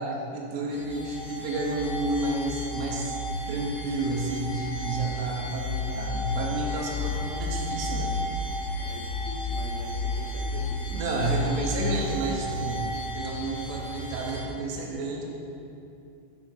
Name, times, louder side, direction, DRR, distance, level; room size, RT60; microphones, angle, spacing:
voice 1, 0.0-3.1 3.5-8.4 10.9-12.9 13.1-15.2, right 2 dB, 85° right, -1 dB, 2.4 m, -31 dB
sound 1, 0.7-14.4, left 2 dB, 55° left, 2.3 m, -32 dB
voice 2, 8.7-11.3, left 4 dB, 80° left, 3 dB, 2.3 m, -42 dB
6.2 x 5.0 x 5.7 m, 2.7 s
omnidirectional pair, 4.1 m